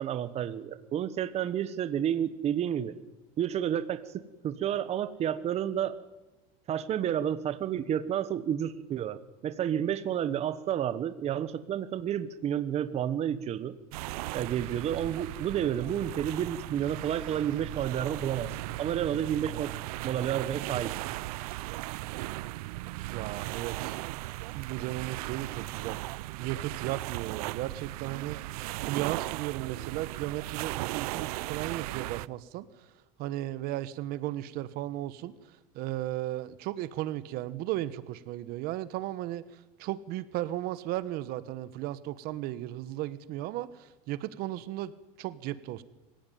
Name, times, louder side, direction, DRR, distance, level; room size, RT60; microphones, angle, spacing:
voice 1, 0.0-2.9 3.4-5.9 6.7-13.7 14.3-18.5 18.8-19.7 20.0-20.9, right 10 dB, 35° right, 12 dB, 1.2 m, -30 dB
abudhabi beach, 13.9-32.3, right 19 dB, 80° right, 0.7 m, -37 dB
voice 2, 23.1-24.0 24.5-26.0 26.4-28.4 28.8-32.7 33.2-35.3 35.7-39.4 39.8-44.9 45.2-45.8, right 14 dB, 55° right, 15 dB, 1.2 m, -35 dB
24.5 x 16.0 x 9.3 m, 1.0 s
supercardioid pair, 130°, 19 cm